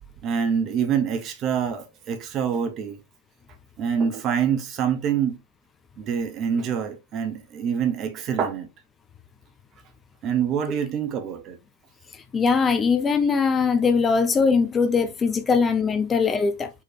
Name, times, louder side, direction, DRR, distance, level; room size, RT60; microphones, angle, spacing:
voice 1, 0.2-3.0 3.8-5.4 6.0-8.7 10.2-11.6, right 7 dB, 35° right, 0.9 m, -25 dB
voice 2, 12.3-16.7, left 5 dB, 20° left, 0.5 m, -21 dB
4.6 x 3.2 x 3.2 m
figure-of-eight pair, 90°, 0 cm